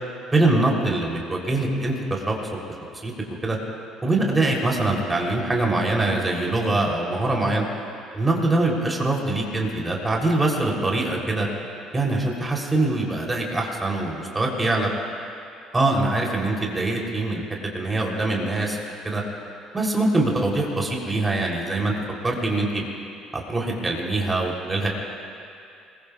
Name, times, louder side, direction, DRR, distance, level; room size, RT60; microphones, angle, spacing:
voice 1, 0.3-2.4 3.0-3.1 3.4-3.6 4.0-7.6 8.1-11.5 11.9-14.9 15.7-17.4 17.7-18.8 19.0-19.2 19.7-21.9 22.2-22.8 23.3-24.9, right 2 dB, 20° right, -1 dB, 3.5 m, -23 dB
25.5 x 21.5 x 2.5 m, 2.4 s
figure-of-eight pair, 55°, 0 cm